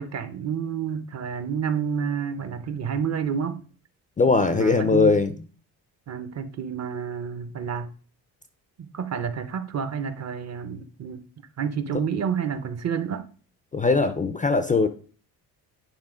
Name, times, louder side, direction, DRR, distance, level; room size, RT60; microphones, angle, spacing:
voice 1, 0.0-3.6 4.3-5.2 6.1-7.9 8.8-11.2 11.6-13.3, right 7 dB, 40° right, 0.7 m, -29 dB
voice 2, 4.2-5.3 13.7-14.9, left 4 dB, 20° left, 0.4 m, -20 dB
9.0 x 3.3 x 4.9 m
cardioid pair, 135°, 40 cm